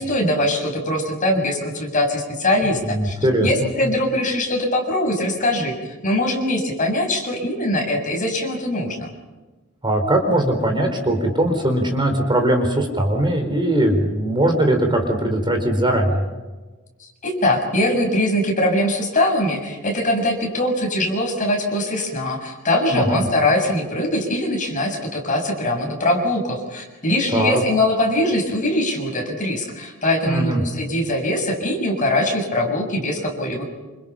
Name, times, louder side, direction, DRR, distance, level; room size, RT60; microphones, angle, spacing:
voice 1, 0.0-3.1 3.4-5.8 6.0-9.1 17.2-33.6, left 1 dB, 35° left, 1 dB, 7.2 m, -22 dB
voice 2, 2.9-3.7 9.8-16.2 22.9-23.2 27.3-27.6 30.2-30.6, right 1 dB, 20° right, 4 dB, 4.6 m, -20 dB
28.5 x 28.0 x 5.8 m, 1.2 s
head